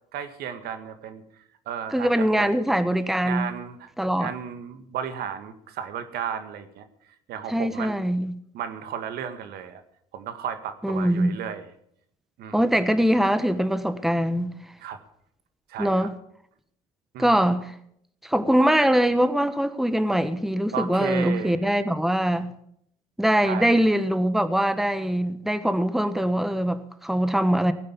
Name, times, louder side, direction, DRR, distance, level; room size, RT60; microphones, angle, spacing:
voice 1, 0.1-2.1 2.4-2.5 3.2-3.9 4.2-6.9 7.3-8.0 8.5-9.8 10.1-11.7 12.4-12.6 14.8-15.0 15.7-16.1 17.1-17.4 20.7-21.7 23.4-23.8, right 8 dB, 65° right, 1.9 m, -34 dB
voice 2, 1.9-3.5 4.0-4.3 7.5-8.4 10.8-11.4 12.5-14.5 15.8-16.1 17.2-17.7 18.2-22.5 23.2-27.7, equal, ahead, 1.3 m, -22 dB
18.0 x 9.5 x 7.1 m
hypercardioid pair, 65°, 17 cm